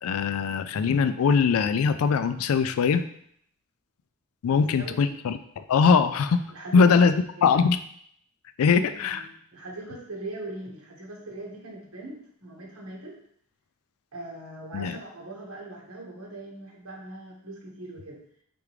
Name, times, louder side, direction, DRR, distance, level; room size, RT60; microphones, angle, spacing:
voice 1, 0.0-3.0 4.4-5.4 5.7-6.4 6.7-7.2 7.4-7.8 8.6-9.2 14.7-15.0, left 5 dB, 75° left, 12 dB, 0.3 m, -21 dB
voice 2, 4.5-5.1 6.5-7.0 7.4-7.6 8.7-9.3 9.5-13.2 14.1-18.2, right 2 dB, 80° right, -2 dB, 1.4 m, -40 dB
4.8 x 3.5 x 3.2 m, 0.66 s
head